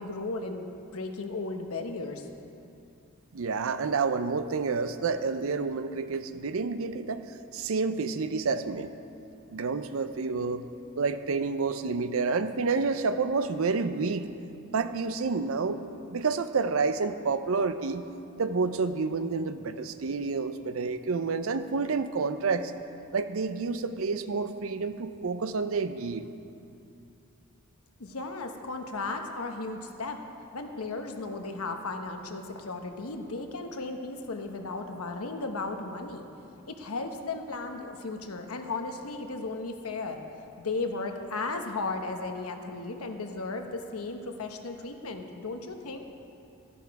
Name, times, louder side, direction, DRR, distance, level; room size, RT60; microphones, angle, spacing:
voice 1, 0.0-2.3 28.0-30.2 30.5-36.3 36.7-40.2 40.6-46.0, left 3 dB, 85° left, 5 dB, 1.0 m, -35 dB
voice 2, 3.3-7.3 7.5-8.9 9.5-10.6 11.0-14.3 14.7-15.8 16.1-18.1 18.4-22.7 23.1-26.3, right 4 dB, 75° right, 11 dB, 0.5 m, -29 dB
12.5 x 11.5 x 4.7 m, 2.7 s
head